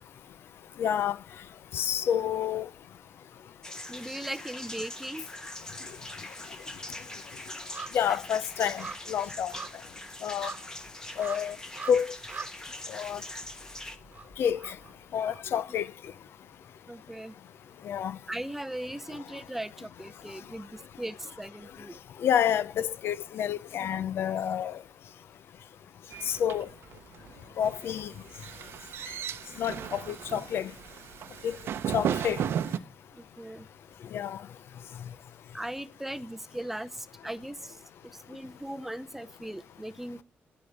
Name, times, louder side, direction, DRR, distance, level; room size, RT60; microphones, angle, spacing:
voice 1, 0.8-1.2 1.7-2.7 7.9-9.5 10.2-10.5 11.2-11.6 11.9-12.1 12.9-13.2 14.4-14.8 15.1-15.9 17.8-18.2 22.2-24.8 26.3-26.7 27.6-28.1 29.6-30.7 31.4-31.6 31.9-32.4 34.1-34.4, left 9 dB, 75° left, 0.5 m, -28 dB
sound 1, 3.6-14.0, left 1 dB, 15° left, 1.1 m, -43 dB
voice 2, 3.9-5.2 8.1-8.2 15.7-15.8 16.9-17.3 18.3-22.0 23.8-24.0 29.7-29.9 33.1-33.7 35.5-37.8 38.1-40.2, right 1 dB, 5° right, 0.5 m, -39 dB
sound 2, 4.8-5.5 5.8-15.8 16.1-16.2, right 5 dB, 40° right, 1.2 m, -45 dB
sound 3, 26.1-32.8, right 9 dB, 80° right, 0.7 m, -35 dB
9.7 x 8.5 x 7.2 m
cardioid pair, 115°, 4 cm